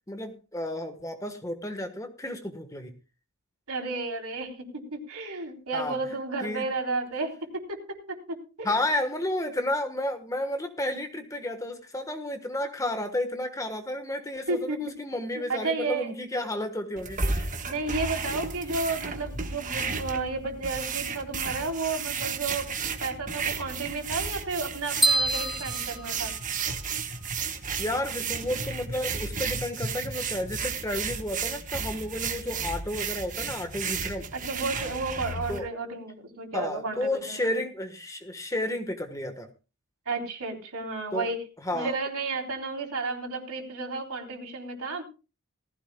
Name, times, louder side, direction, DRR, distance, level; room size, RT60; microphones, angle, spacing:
voice 1, 0.1-2.9 5.7-6.0 6.4-6.7 8.6-17.5 27.8-34.3 35.5-35.7 36.5-39.5 41.1-41.3 41.6-42.0, left 1 dB, 15° left, 7 dB, 1.3 m, -32 dB
voice 2, 3.7-7.8 8.1-8.7 14.5-14.8 15.5-16.1 17.6-22.7 23.0-26.3 34.3-37.6 40.1-41.4 41.7-45.0, right 3 dB, 80° right, 1 dB, 3.7 m, -32 dB
Hand on Bike Tire, 17.0-35.6, right 5 dB, 35° right, 1.4 m, -33 dB
sound 1, 25.0-26.9, right 2 dB, ahead, 1.5 m, -27 dB
18.5 x 15.5 x 2.3 m, 0.32 s
head